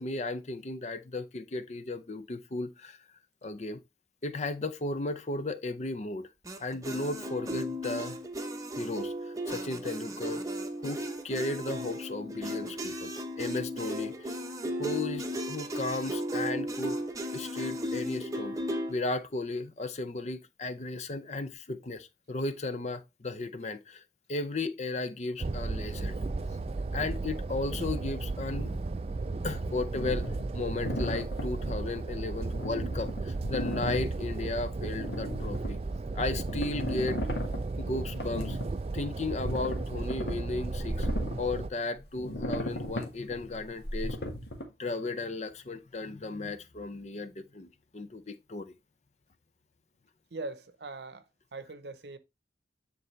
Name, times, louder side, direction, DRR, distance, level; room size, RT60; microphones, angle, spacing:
voice 1, 0.0-3.0 3.4-3.8 4.2-6.3 6.6-8.2 8.8-10.4 10.8-14.3 14.8-17.0 17.3-18.6 18.9-24.0 24.3-26.2 26.9-28.8 29.4-35.8 36.1-37.2 37.8-38.6 38.9-41.1 41.4-44.2 44.8-48.7, left 2 dB, 40° left, 0.6 m, -35 dB
sound 1, 6.4-18.9, equal, 20° right, 0.8 m, -35 dB
sound 2, 25.4-41.7, right 3 dB, 35° right, 0.4 m, -34 dB
sound 3, 29.9-31.5 32.5-34.1 34.7-35.7 36.5-37.6 38.2-38.7 39.0-39.1 39.3-41.5 42.0-44.6, left 1 dB, 70° left, 1.6 m, -35 dB
voice 2, 50.3-51.3 51.5-52.2, right 3 dB, 70° right, 0.8 m, -41 dB
9.4 x 4.0 x 3.2 m
head